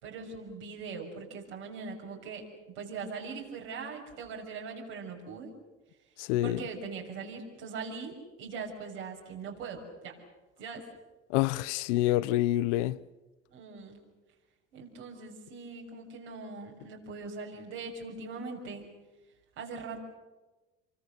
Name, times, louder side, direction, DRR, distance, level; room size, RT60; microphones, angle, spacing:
voice 1, 0.0-5.5 6.1-6.2 6.4-10.2 10.6-10.8 13.5-14.0 14.7-18.9 19.5-20.0, right 4 dB, 80° right, 6.6 m, -41 dB
voice 2, 6.2-6.6 11.3-13.0, left 15 dB, 80° left, 0.7 m, -27 dB
27.0 x 24.5 x 6.9 m
hypercardioid pair, 65°, 35 cm